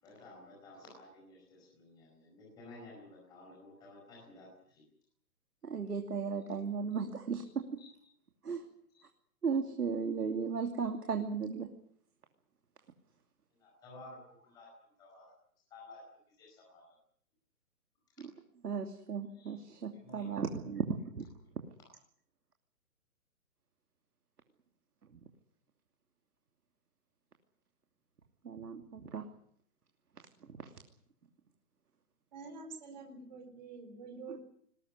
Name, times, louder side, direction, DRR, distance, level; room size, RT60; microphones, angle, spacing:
voice 1, 0.0-4.8 7.8-7.9 8.9-9.1 13.5-15.3 15.7-16.0 16.3-16.9 19.3-19.6 19.9-20.3, left 2 dB, 10° left, -3 dB, 4.9 m, -54 dB
voice 2, 5.6-7.7 8.4-8.6 9.4-11.7 18.6-21.3 25.1-25.2 28.4-29.3 30.4-30.7 34.3-34.4, right 5 dB, 90° right, 5 dB, 2.9 m, -36 dB
voice 3, 32.3-34.4, right 4 dB, 30° right, 4 dB, 4.2 m, -47 dB
21.0 x 18.0 x 9.8 m, 0.64 s
hypercardioid pair, 175°, 45 cm